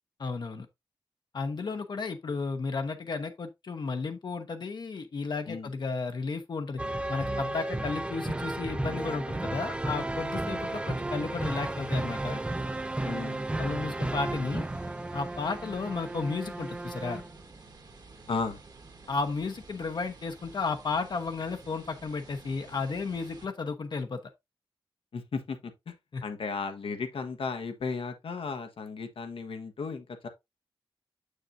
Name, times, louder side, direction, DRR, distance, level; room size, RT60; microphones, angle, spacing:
voice 1, 0.2-0.7 1.3-6.8 7.1-12.4 13.6-14.7 15.1-17.2 19.1-24.2 26.1-26.2, left 4 dB, 55° left, 0.8 m, -33 dB
sound 1, 6.8-17.3, right 2 dB, 10° right, 0.4 m, -33 dB
sound 2, 9.7-23.5, right 3 dB, 45° right, 1.4 m, -51 dB
voice 2, 13.0-13.4 18.3-18.6 25.1-25.9 26.2-30.3, left 4 dB, 85° left, 1.2 m, -35 dB
7.4 x 6.5 x 2.6 m
wide cardioid pair, 160°, 9 cm